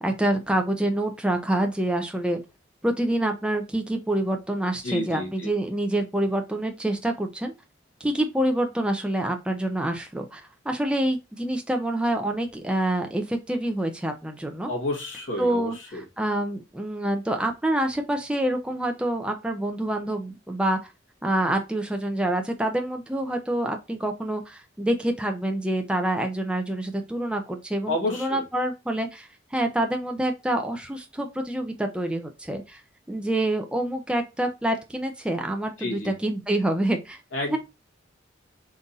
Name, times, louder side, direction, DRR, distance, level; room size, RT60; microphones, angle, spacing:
voice 1, 0.0-2.4 2.8-7.5 8.0-14.7 15.4-20.8 21.2-32.8 33.1-37.2 37.5-37.6, right 1 dB, 5° right, 4 dB, 0.4 m, -27 dB
voice 2, 4.8-5.5 14.7-16.0 27.9-28.4 35.8-36.1 37.3-37.6, left 2 dB, 85° left, 2 dB, 1.4 m, -30 dB
3.8 x 2.6 x 3.9 m, 0.25 s
head